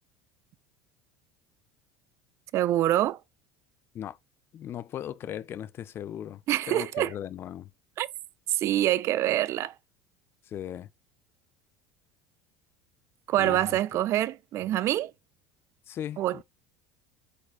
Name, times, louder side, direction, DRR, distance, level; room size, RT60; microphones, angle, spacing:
voice 1, 2.5-3.2 6.5-7.1 8.0-8.1 8.5-9.7 13.3-15.1 16.2-16.4, right 13 dB, 50° right, 0.5 m, -25 dB
voice 2, 4.5-7.7 10.5-10.9 13.4-14.0 15.9-16.4, left 10 dB, 40° left, 0.4 m, -38 dB
4.7 x 4.2 x 2.3 m
supercardioid pair, 100°, 6 cm